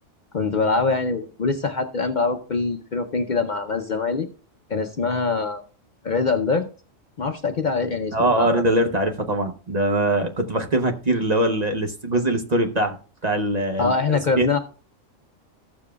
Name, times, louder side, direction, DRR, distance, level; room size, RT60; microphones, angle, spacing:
voice 1, 0.3-4.3 4.7-5.6 6.0-6.7 7.2-8.6 13.8-14.6, left 4 dB, 45° left, 5 dB, 0.7 m, -23 dB
voice 2, 8.1-13.0 13.2-14.6, right 1 dB, 40° right, 5 dB, 0.8 m, -22 dB
15.0 x 7.1 x 2.3 m, 0.37 s
omnidirectional pair, 1.3 m